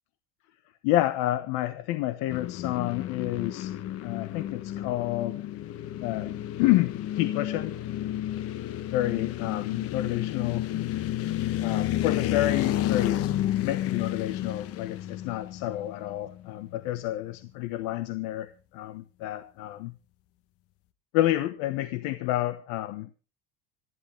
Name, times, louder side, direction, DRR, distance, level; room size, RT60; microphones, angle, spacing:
voice 1, 0.8-3.7 4.0-5.5 6.0-7.7 8.9-10.7 11.6-13.2 13.6-19.9 21.1-23.1, left 15 dB, 75° left, 1.2 m, -29 dB
sound 1, 2.3-16.5, left 12 dB, 45° left, 1.0 m, -31 dB
26.5 x 11.0 x 3.4 m
cardioid pair, 170°, 32 cm